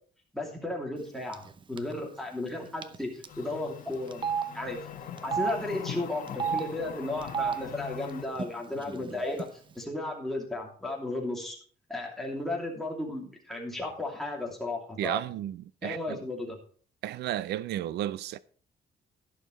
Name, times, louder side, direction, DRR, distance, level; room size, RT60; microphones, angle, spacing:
voice 1, 0.3-4.3 4.5-4.8 5.2-9.5 9.7-11.6 11.9-15.2 15.8-16.6, left 2 dB, ahead, 2.8 m, -34 dB
Telephone, 1.3-1.5 1.8-1.9 2.8-3.0 3.2-3.3 4.1-4.4 5.2-5.5 6.3-6.6 7.2-7.5 8.4-8.5 8.7-9.4, right 7 dB, 30° right, 0.7 m, -30 dB
sound 1, 3.3-8.3, left 9 dB, 55° left, 1.3 m, -42 dB
voice 2, 15.0-16.2 17.0-18.4, right 12 dB, 90° right, 0.5 m, -33 dB
12.0 x 11.0 x 3.2 m
cardioid pair, 160°, 17 cm